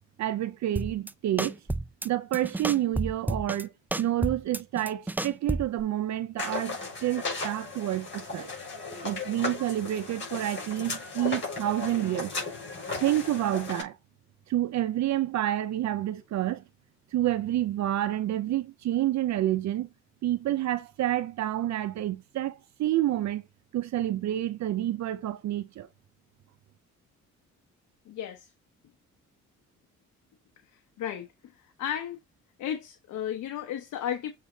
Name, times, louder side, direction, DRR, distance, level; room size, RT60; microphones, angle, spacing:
voice 1, 0.2-1.6 2.0-3.7 4.0-8.5 9.0-12.3 12.9-14.0 14.5-16.6 17.1-19.9 20.2-23.4 23.7-25.9, right 13 dB, 65° right, 0.6 m, -29 dB
sound 1, 0.8-1.1 1.4-2.1 2.3-3.6 3.9-5.8, right 2 dB, 5° right, 0.4 m, -31 dB
sound 2, 6.4-13.8, left 3 dB, 40° left, 5.0 m, -36 dB
voice 2, 28.1-28.5 30.7-31.5 31.8-32.2 32.6-34.3, left 10 dB, 80° left, 1.0 m, -34 dB
7.3 x 3.6 x 3.9 m
cardioid pair, 90°, 30 cm